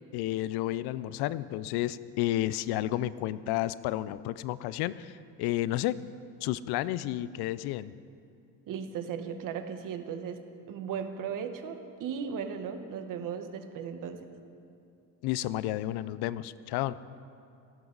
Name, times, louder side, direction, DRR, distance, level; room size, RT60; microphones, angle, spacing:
voice 1, 0.0-6.0 6.4-7.9 15.2-17.0, left 14 dB, 80° left, 17 dB, 0.6 m, -31 dB
voice 2, 8.7-10.4 10.7-14.3, right 7 dB, 55° right, 7 dB, 1.3 m, -36 dB
17.5 x 17.0 x 4.0 m, 2.5 s
cardioid pair, 130°, 37 cm